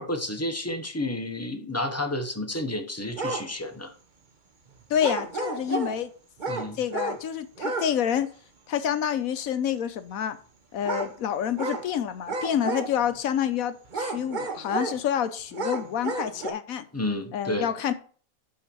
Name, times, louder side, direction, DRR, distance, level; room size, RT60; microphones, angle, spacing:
voice 1, 0.0-3.9 6.5-6.8 16.9-17.7, left 1 dB, 15° left, 5 dB, 0.7 m, -31 dB
sound 1, 3.1-3.5 5.0-6.0 6.4-7.2 7.6-7.9 8.2-8.3 10.8-11.1 11.6-11.9 12.3-13.1 13.8-15.0 15.5-16.5, right 3 dB, 35° right, 1.0 m, -31 dB
voice 2, 4.9-6.1 6.7-8.3 8.7-10.4 10.7-16.8 17.3-17.9, left 9 dB, 70° left, 11 dB, 1.2 m, -28 dB
5.8 x 5.5 x 6.9 m, 0.43 s
omnidirectional pair, 1.6 m